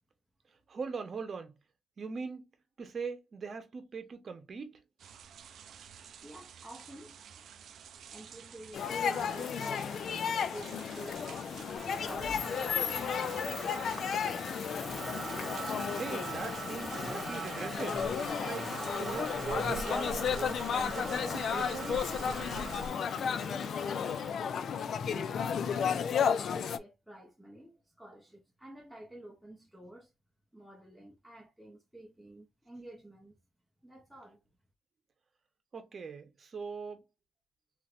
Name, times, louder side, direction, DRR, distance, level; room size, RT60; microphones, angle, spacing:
voice 1, 0.7-1.5 2.0-2.4 2.8-4.8 15.9-18.1 18.4-18.7 19.0-22.1 35.7-37.0, right 5 dB, 45° right, 0.9 m, -41 dB
sound 1, 5.0-22.9, right 4 dB, 65° right, 0.4 m, -49 dB
voice 2, 6.2-7.2 8.1-10.2 10.5-14.7 23.1-24.7 25.0-30.1 30.5-33.3 33.8-34.4, right 1 dB, ahead, 0.8 m, -50 dB
sound 2, 8.7-26.8, left 7 dB, 60° left, 0.3 m, -33 dB
Motor vehicle (road), 11.8-24.3, right 3 dB, 15° right, 1.7 m, -42 dB
3.1 x 2.9 x 2.4 m
cardioid pair, 90°, 0 cm